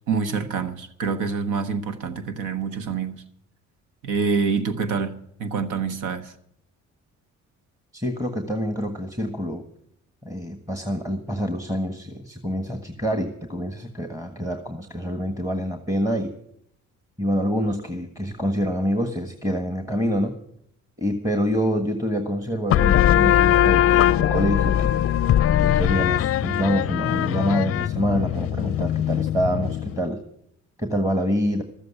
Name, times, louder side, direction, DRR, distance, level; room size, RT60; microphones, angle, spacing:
voice 1, 0.1-3.2 4.0-6.3, right 5 dB, 85° right, 1.3 m, -26 dB
voice 2, 7.9-9.6 10.2-16.3 17.2-20.4 21.0-24.9 25.6-30.2 30.8-31.6, equal, 10° right, 1.4 m, -26 dB
sound 1, 22.7-30.0, left 11 dB, 50° left, 0.4 m, -20 dB
13.5 x 7.7 x 9.8 m
cardioid pair, 90°, 30 cm